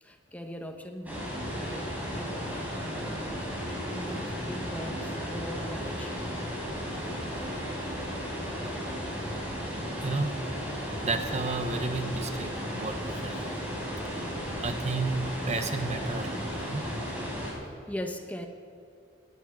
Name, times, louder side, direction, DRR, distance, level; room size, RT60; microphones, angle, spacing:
voice 1, 0.0-3.3 3.6-6.4 17.9-18.5, equal, 10° left, 5 dB, 0.9 m, -41 dB
sound 1, 1.1-17.5, equal, 10° right, 4.4 m, -34 dB
voice 2, 11.0-13.6 14.6-16.8, right 3 dB, 35° right, 7 dB, 1.1 m, -32 dB
19.0 x 11.0 x 6.2 m, 2.4 s
head